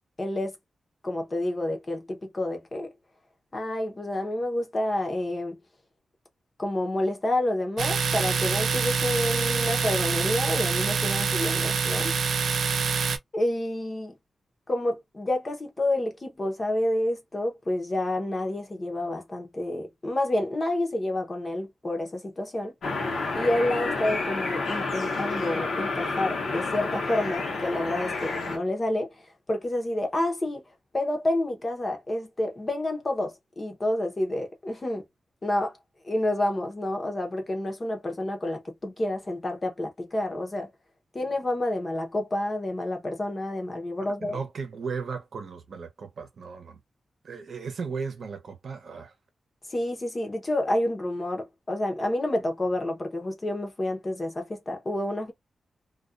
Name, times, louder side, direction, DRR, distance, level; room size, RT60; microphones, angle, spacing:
voice 1, 0.2-0.5 1.0-2.9 3.5-5.6 6.6-12.1 13.3-14.1 14.7-22.7 23.3-29.1 29.5-30.6 30.9-35.0 35.4-35.8 36.0-40.7 41.1-44.4 49.7-55.3, left 1 dB, 25° left, 0.7 m, -29 dB
Domestic sounds home sounds, 7.8-13.2, right 5 dB, 80° right, 0.5 m, -26 dB
sound 1, 22.8-28.6, left 3 dB, 60° left, 0.9 m, -30 dB
voice 2, 44.2-46.8 47.2-49.1, right 5 dB, 55° right, 0.8 m, -36 dB
2.4 x 2.3 x 2.4 m
wide cardioid pair, 170°, 0 cm